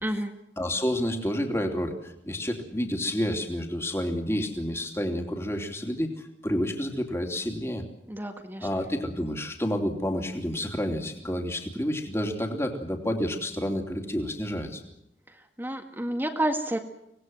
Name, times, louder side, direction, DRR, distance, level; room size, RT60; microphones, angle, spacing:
voice 1, 0.0-0.3 8.1-8.7 15.6-16.8, right 1 dB, 10° right, 4 dB, 1.8 m, -29 dB
voice 2, 0.6-7.8 8.6-14.8, equal, 15° left, 3 dB, 3.0 m, -29 dB
25.5 x 19.0 x 7.8 m, 0.83 s
head